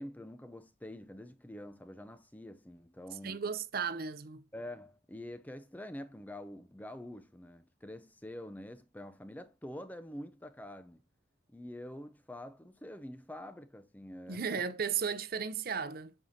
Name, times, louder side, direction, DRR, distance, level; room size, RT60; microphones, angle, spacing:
voice 1, 0.0-3.4 4.5-11.0 11.5-14.6, left 1 dB, 10° left, 0.4 m, -46 dB
voice 2, 3.2-4.4 14.3-16.1, right 6 dB, 45° right, 0.6 m, -35 dB
8.1 x 5.5 x 2.7 m
head